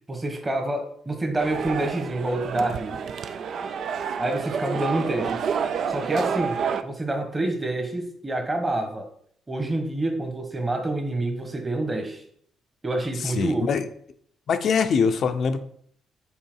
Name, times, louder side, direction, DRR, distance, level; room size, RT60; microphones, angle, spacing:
voice 1, 0.1-3.0 4.2-5.4 5.9-9.1 9.5-12.2 12.8-13.7, right 2 dB, 20° right, 4 dB, 1.3 m, -27 dB
sound 1, 1.4-6.8, right 7 dB, 60° right, 0.4 m, -29 dB
voice 2, 13.2-13.9 14.5-15.6, left 6 dB, 60° left, 9 dB, 0.6 m, -23 dB
5.6 x 4.7 x 4.6 m, 0.65 s
cardioid pair, 90°, 0 cm